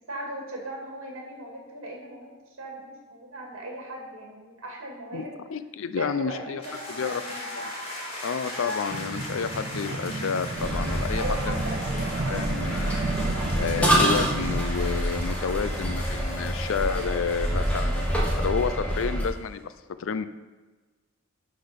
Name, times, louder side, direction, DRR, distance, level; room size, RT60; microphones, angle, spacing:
voice 1, 0.1-2.3 2.6-5.3 6.0-7.5 11.2-12.1, right 1 dB, 60° right, -1 dB, 2.3 m, -38 dB
voice 2, 5.1-6.6 6.9-7.2 7.5-7.7 8.2-11.6 12.2-13.0 13.6-19.7 20.0-20.3, left 6 dB, 60° left, 13 dB, 0.4 m, -30 dB
sound 1, 6.6-19.3, left 1 dB, 25° left, 2.3 m, -39 dB
sound 2, 8.9-14.6, right 3 dB, 45° right, 0.5 m, -32 dB
sound 3, 10.6-19.3, equal, 5° left, 1.3 m, -27 dB
11.5 x 4.0 x 5.2 m, 1.3 s
head